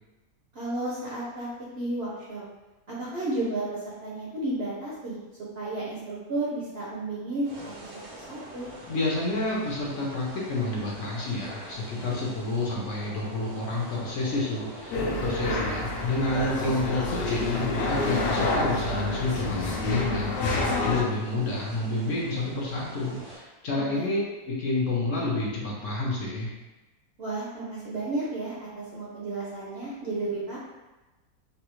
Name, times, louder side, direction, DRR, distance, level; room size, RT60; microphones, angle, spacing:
voice 1, 0.5-1.5 1.7-2.4 2.9-5.2 5.6-7.9 8.3-8.7 15.4-15.6 23.7-24.1 27.2-30.6, right 2 dB, 60° right, -6 dB, 0.7 m, -32 dB
sound 1, 7.4-23.4, right 1 dB, 90° right, 1.4 m, -45 dB
voice 2, 8.9-24.2 24.5-26.5, left 2 dB, 65° left, -4 dB, 1.0 m, -29 dB
sound 2, 14.9-21.0, left 2 dB, 85° left, 0.5 m, -28 dB
3.4 x 2.4 x 2.9 m, 1.1 s
omnidirectional pair, 1.6 m